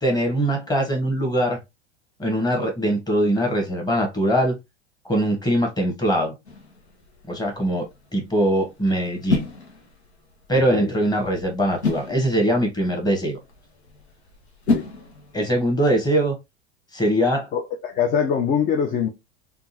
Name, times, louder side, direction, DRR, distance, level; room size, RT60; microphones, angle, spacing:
voice 1, 0.0-1.6 2.2-4.6 5.0-6.3 7.3-7.9 8.1-9.5 10.5-13.4 15.3-16.3 16.9-17.5, right 1 dB, 10° left, 1.3 m, -22 dB
sound 1, 6.5-15.7, left 3 dB, 85° left, 0.9 m, -32 dB
voice 2, 10.5-10.9 14.7-14.8 17.5-19.1, left 7 dB, 25° left, 0.5 m, -23 dB
3.4 x 2.4 x 2.7 m
hypercardioid pair, 90°, 33 cm